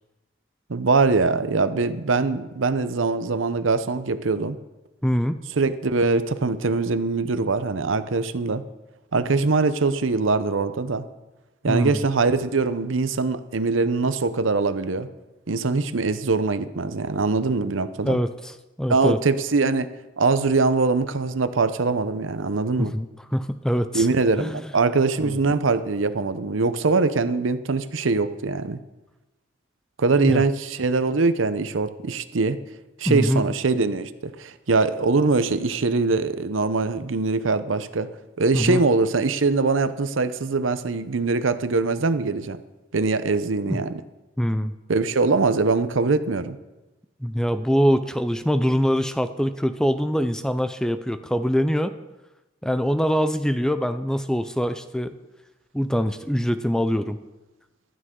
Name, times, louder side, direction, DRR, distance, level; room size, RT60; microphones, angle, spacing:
voice 1, 0.7-4.6 5.6-8.6 9.1-11.0 11.6-15.1 15.5-18.2 18.9-19.9 20.2-22.9 23.9-28.8 30.0-32.6 33.0-38.1 38.4-42.6 42.9-44.0 44.9-46.6, right 3 dB, 85° right, 12 dB, 0.7 m, -22 dB
voice 2, 5.0-5.4 11.7-12.0 18.0-19.2 22.8-24.1 24.4-24.6 25.2-25.3 30.2-30.4 33.1-33.4 38.5-38.8 43.7-43.8 44.4-44.7 47.2-51.9 52.6-55.1 55.7-57.2, equal, 5° left, 10 dB, 0.4 m, -23 dB
15.5 x 12.5 x 3.8 m, 1.0 s
head